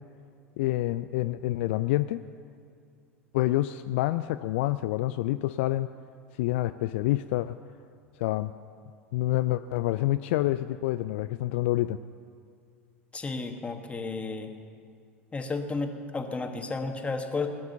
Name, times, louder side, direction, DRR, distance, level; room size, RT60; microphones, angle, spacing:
voice 1, 0.6-2.2 3.3-5.9 6.4-7.6 8.2-8.5 9.1-12.0, left 16 dB, 60° left, 12 dB, 0.4 m, -27 dB
voice 2, 13.1-14.5 15.3-17.5, left 3 dB, 15° left, 5 dB, 1.6 m, -32 dB
18.5 x 9.4 x 6.9 m, 2.3 s
figure-of-eight pair, 80°, 7 cm